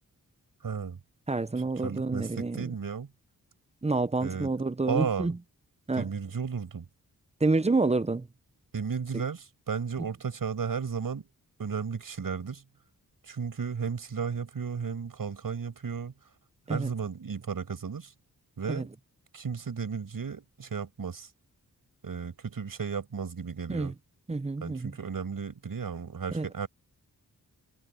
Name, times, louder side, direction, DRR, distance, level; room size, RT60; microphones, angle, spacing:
voice 1, 0.6-1.0 1.8-3.1 4.2-4.5 4.9-5.3 6.0-6.9 8.7-11.3 11.6-12.6 13.2-16.1 16.7-18.1 18.6-18.9 19.3-21.3 22.0-23.9 24.6-26.7, right 6 dB, 70° right, 5.8 m, -34 dB
voice 2, 1.3-2.6 3.8-5.4 5.9-6.1 7.4-8.3 9.1-9.2 16.7-16.9 18.7-18.8 23.7-23.9 24.3-24.9 26.3-26.5, right 3 dB, 20° right, 0.7 m, -28 dB
cardioid pair, 75°, 36 cm